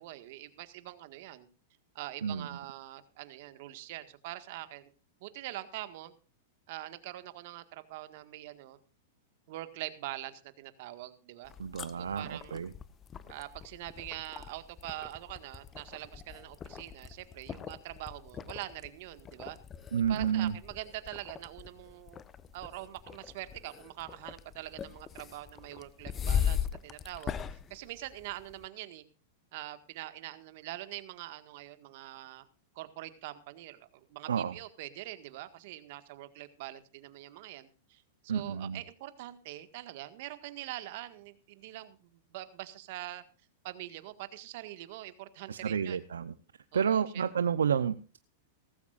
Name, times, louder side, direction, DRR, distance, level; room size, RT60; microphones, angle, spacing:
voice 1, 0.0-1.5 2.0-4.9 5.2-6.1 6.7-8.8 9.5-11.5 12.0-12.6 13.2-19.6 20.1-22.2 22.5-29.0 29.5-32.5 32.8-43.2 43.6-46.0 46.7-47.2, right 16 dB, 60° right, 11 dB, 1.7 m, -44 dB
sound 1, 11.4-28.7, left 8 dB, 25° left, 1.0 m, -40 dB
voice 2, 11.6-12.7 19.9-20.5 34.3-34.6 38.3-38.8 45.5-46.3 46.7-48.2, right 7 dB, 90° right, 13 dB, 0.7 m, -30 dB
18.0 x 15.0 x 2.5 m, 0.34 s
hypercardioid pair, 115°, 0 cm